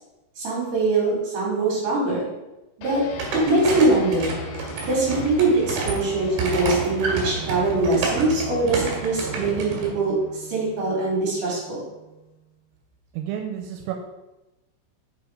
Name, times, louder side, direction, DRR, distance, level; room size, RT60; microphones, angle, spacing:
voice 1, 0.4-2.3 2.8-3.0 3.3-4.3 4.8-11.9, right 2 dB, 45° right, -4 dB, 4.2 m, -22 dB
sound 1, 2.8-12.6, left 1 dB, 80° left, 3.0 m, -39 dB
sound 2, 3.1-9.9, right 4 dB, 60° right, 3.2 m, -29 dB
voice 2, 13.1-13.9, right 10 dB, 85° right, 3 dB, 3.2 m, -30 dB
7.0 x 6.3 x 4.9 m, 1.0 s
omnidirectional pair, 5.9 m